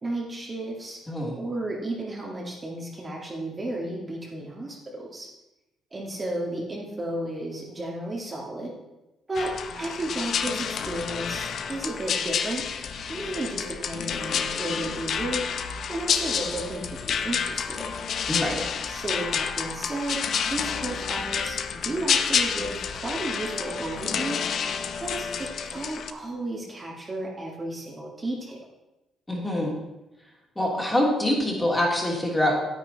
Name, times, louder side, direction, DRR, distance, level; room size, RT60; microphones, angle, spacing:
voice 1, 0.0-1.0 1.4-5.3 5.9-8.7 9.3-12.6 13.1-15.4 15.9-17.9 18.9-24.5 25.0-28.6, right 1 dB, 30° right, -2 dB, 2.1 m, -33 dB
sound 1, 9.4-26.1, left 7 dB, 60° left, 0.7 m, -29 dB
voice 2, 18.3-18.6 29.3-29.7 30.6-32.6, left 1 dB, 15° left, -2 dB, 3.0 m, -25 dB
9.7 x 8.8 x 4.1 m, 0.99 s
cardioid pair, 90°, 0 cm